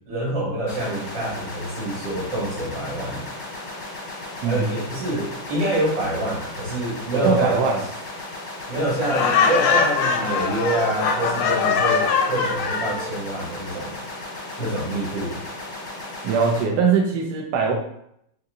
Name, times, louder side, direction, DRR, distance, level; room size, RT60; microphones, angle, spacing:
voice 1, 0.1-3.2 4.4-7.6 8.7-14.0 14.6-15.4, right 1 dB, 60° right, -5 dB, 1.9 m, -26 dB
sound 1, 0.7-16.6, left 2 dB, 50° left, 0.5 m, -36 dB
voice 2, 7.1-7.8 16.2-17.7, right 5 dB, 75° right, 0 dB, 0.9 m, -21 dB
Laughter, 9.0-13.1, left 5 dB, 85° left, 1.4 m, -22 dB
3.8 x 2.7 x 2.6 m, 0.73 s
omnidirectional pair, 2.3 m